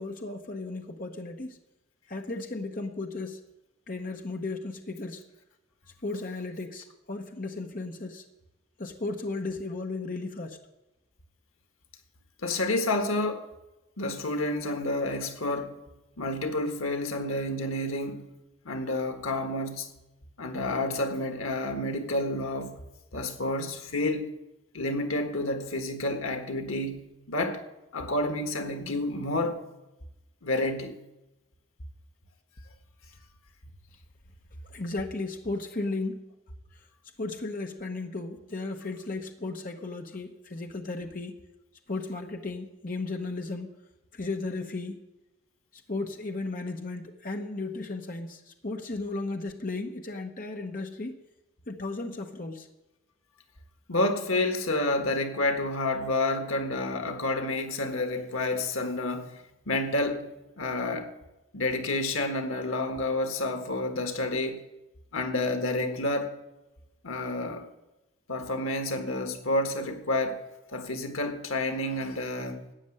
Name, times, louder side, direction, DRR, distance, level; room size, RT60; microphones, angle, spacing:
voice 1, 0.0-1.6 2.1-3.5 3.9-5.2 6.0-8.2 8.8-10.6 34.6-36.3 37.2-41.4 41.9-43.8 44.1-45.1 45.7-51.2 51.7-52.7, left 3 dB, 40° left, 1.0 m, -35 dB
voice 2, 12.4-13.5 14.0-15.8 16.2-18.3 18.6-20.0 20.4-22.8 23.1-24.3 24.7-27.6 27.9-29.6 30.4-31.0 53.9-60.3 60.6-61.1 61.5-64.6 65.1-66.4 67.0-67.7 68.3-72.6, left 2 dB, 90° left, 1.5 m, -29 dB
13.0 x 8.6 x 7.8 m
head